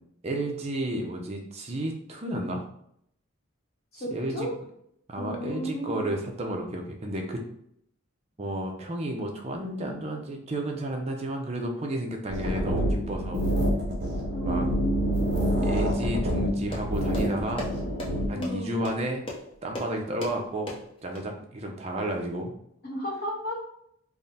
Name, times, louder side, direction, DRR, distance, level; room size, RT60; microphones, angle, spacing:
voice 1, 0.2-2.6 4.1-4.5 5.1-7.4 8.4-13.4 14.4-14.7 15.6-17.7 18.3-19.2 19.6-22.5, right 1 dB, 30° right, 2 dB, 0.5 m, -32 dB
voice 2, 3.9-4.5 5.1-6.0 14.3-15.7 18.3-18.8 22.8-23.6, equal, 45° left, -3 dB, 1.0 m, -33 dB
sound 1, 12.3-18.3, equal, 45° right, 0.9 m, -27 dB
sound 2, 16.3-21.2, left 1 dB, 25° left, 0.7 m, -40 dB
3.5 x 2.1 x 4.0 m, 0.71 s
head